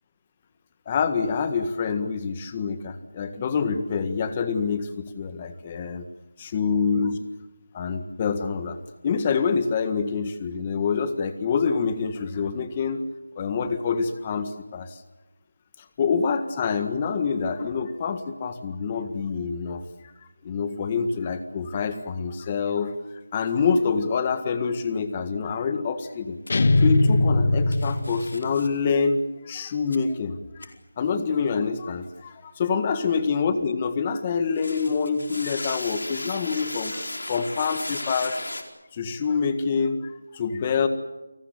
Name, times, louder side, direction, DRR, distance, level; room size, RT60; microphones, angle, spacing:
voice 1, 0.8-6.1 6.4-7.2 7.7-8.8 9.0-13.0 13.3-15.0 16.0-19.8 20.4-22.9 23.3-30.7 31.0-37.0 37.3-38.4 38.9-40.9, left 5 dB, 20° left, 10 dB, 1.7 m, -26 dB
sound 1, 26.5-26.6 27.7-28.7 29.9-30.0 30.6-30.7 34.5-38.6, left 2 dB, 85° left, 4.7 m, -35 dB
sound 2, 26.5-28.5, left 2 dB, 45° left, 1.6 m, -20 dB
29.5 x 19.0 x 8.2 m, 1.1 s
figure-of-eight pair, 170°, 0 cm